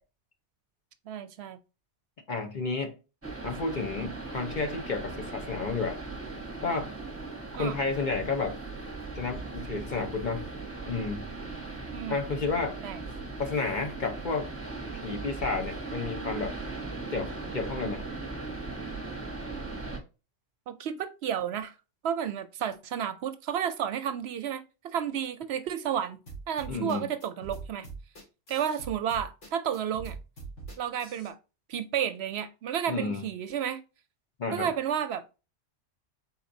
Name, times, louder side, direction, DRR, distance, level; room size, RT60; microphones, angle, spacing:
voice 1, 1.1-1.6 7.5-7.8 11.9-12.2 12.8-13.0 20.7-21.7 22.0-26.2 26.5-27.9 28.5-30.2 30.8-31.4 31.7-33.8 34.5-35.4, right 9 dB, 70° right, 0.8 m, -32 dB
voice 2, 2.3-3.0 3.4-6.0 6.6-6.9 7.6-8.6 9.1-10.5 10.8-11.2 12.1-12.8 13.4-14.5 15.0-16.6 17.1-18.0 26.7-27.1 32.9-33.2 34.4-34.7, left 4 dB, 45° left, 0.9 m, -31 dB
sound 1, 3.2-20.0, right 3 dB, 15° right, 0.9 m, -38 dB
sound 2, 26.3-31.3, right 4 dB, 80° left, 2.3 m, -43 dB
4.3 x 4.0 x 2.6 m
omnidirectional pair, 1.2 m